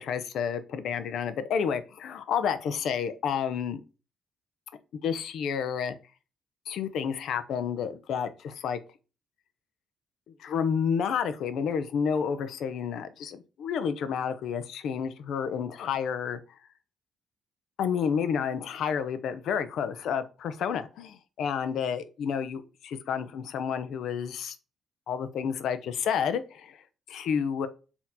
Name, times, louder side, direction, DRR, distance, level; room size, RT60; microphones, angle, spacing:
voice 1, 0.0-3.8 5.0-5.9 6.7-8.8 10.4-16.4 17.8-24.5 25.1-26.8 27.1-27.7, left 7 dB, 75° left, 0.6 m, -30 dB
4.3 x 2.9 x 3.9 m
cardioid pair, 90°, 0 cm